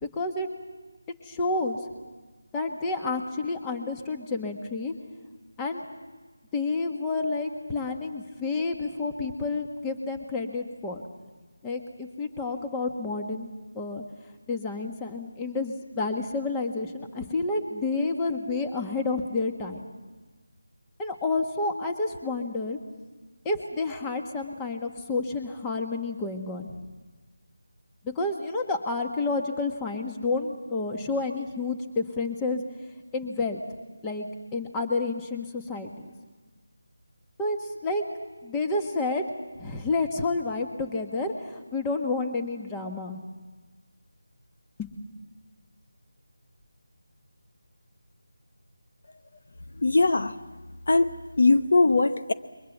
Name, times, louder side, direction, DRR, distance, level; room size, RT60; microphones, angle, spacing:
voice 1, 0.0-0.5 1.2-1.8 2.5-4.9 5.6-5.8 6.5-11.0 11.6-14.0 14.5-19.8 21.0-22.8 23.4-26.7 28.0-32.6 33.1-33.6 34.0-35.9 37.4-38.0 38.4-39.2 39.6-43.2 44.8-44.9, left 3 dB, 10° left, 3 dB, 1.6 m, -30 dB
voice 2, 49.8-50.3 50.9-52.3, left 3 dB, 60° left, 9 dB, 1.0 m, -21 dB
28.0 x 23.0 x 7.3 m, 1.3 s
figure-of-eight pair, 165°, 0 cm